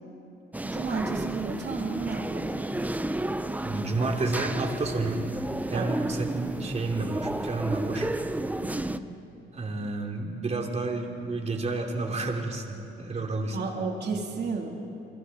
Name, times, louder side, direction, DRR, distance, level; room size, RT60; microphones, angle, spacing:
sound 1, 0.5-9.0, right 1 dB, 10° right, 0.8 m, -32 dB
voice 1, 0.6-2.7 5.7-6.0 8.6-8.9 13.5-14.7, right 4 dB, 55° right, 1 dB, 3.4 m, -33 dB
voice 2, 3.6-5.3 5.7-8.1 9.5-13.7, right 3 dB, 35° right, 2 dB, 3.1 m, -30 dB
28.5 x 24.0 x 4.2 m, 2.8 s
cardioid pair, 90°, 20 cm